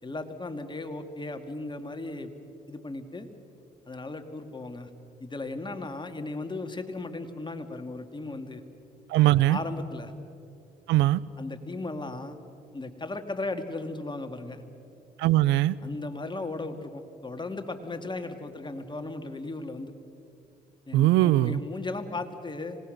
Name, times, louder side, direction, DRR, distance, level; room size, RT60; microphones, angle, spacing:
voice 1, 0.0-2.3 2.7-3.3 3.9-4.9 5.2-8.6 9.5-10.1 11.4-12.4 12.7-14.6 15.8-19.9 20.9-22.8, left 2 dB, 25° left, 6 dB, 2.2 m, -36 dB
voice 2, 9.1-9.6 10.9-11.2 15.2-15.8 20.9-21.6, right 15 dB, 85° right, 20 dB, 0.6 m, -21 dB
26.0 x 19.5 x 6.6 m, 2.6 s
supercardioid pair, 60°, 18 cm